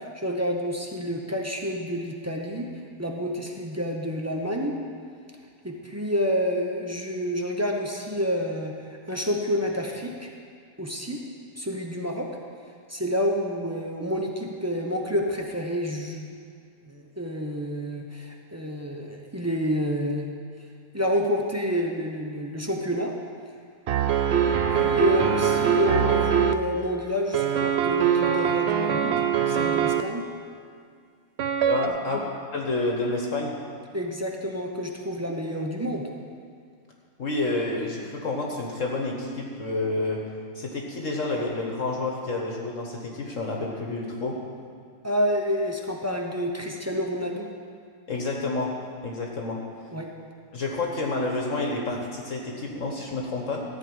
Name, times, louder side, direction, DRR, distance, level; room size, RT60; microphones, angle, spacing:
voice 1, 0.0-2.7 3.0-4.8 5.6-8.7 9.1-10.3 10.8-11.2 11.6-12.3 12.9-16.4 16.9-20.3 20.9-23.1 24.5-29.1 29.5-30.3 32.1-32.2 33.9-36.1 45.0-47.5 49.9-50.1, equal, 20° right, 0 dB, 0.4 m, -28 dB
sound 1, 23.9-26.5 27.3-30.0 31.4-31.9, right 8 dB, 75° right, 0.5 m, -23 dB
voice 2, 31.6-33.6 37.2-40.2 40.5-44.4 48.1-48.7 49.0-49.6 50.5-53.6, left 2 dB, 50° left, 0 dB, 1.4 m, -29 dB
14.0 x 4.9 x 8.7 m, 2.3 s
omnidirectional pair, 1.8 m